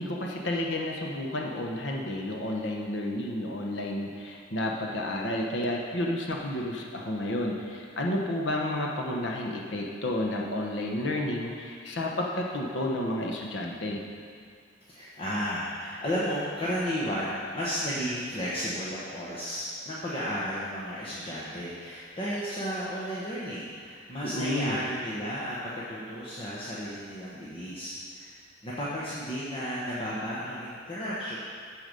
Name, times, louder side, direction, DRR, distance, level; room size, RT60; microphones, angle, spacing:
voice 1, 0.0-14.0 24.2-24.8, left 1 dB, 75° left, 0 dB, 1.0 m, -31 dB
voice 2, 14.9-28.4 28.6-31.4, equal, 30° left, -8 dB, 1.3 m, -33 dB
14.0 x 4.9 x 5.3 m, 2.1 s
head